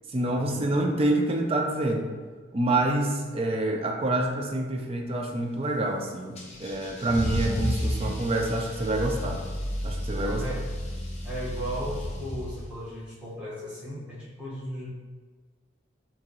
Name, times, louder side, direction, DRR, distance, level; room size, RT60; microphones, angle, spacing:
voice 1, 0.1-2.1 2.5-9.4 9.8-10.4, right 2 dB, 30° right, 2 dB, 0.5 m, -27 dB
Car / Engine starting / Accelerating revving vroom, 6.4-12.8, equal, 35° left, 0.8 m, -32 dB
voice 2, 10.2-10.7 11.2-15.0, equal, 5° right, -10 dB, 1.4 m, -36 dB
4.8 x 2.9 x 3.0 m, 1.5 s
head